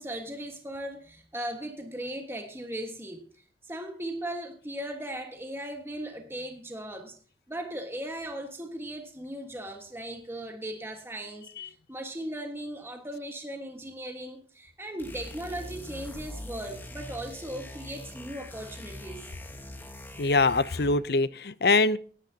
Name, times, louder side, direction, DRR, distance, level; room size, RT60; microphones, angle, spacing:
voice 1, 0.0-3.3 3.6-7.2 7.5-19.3, right 1 dB, 15° right, 4 dB, 1.4 m, -38 dB
sound 1, 15.0-21.1, left 1 dB, 10° left, 1.3 m, -42 dB
voice 2, 20.2-22.0, left 3 dB, 60° left, 17 dB, 0.6 m, -23 dB
18.0 x 10.5 x 2.8 m, 0.42 s
head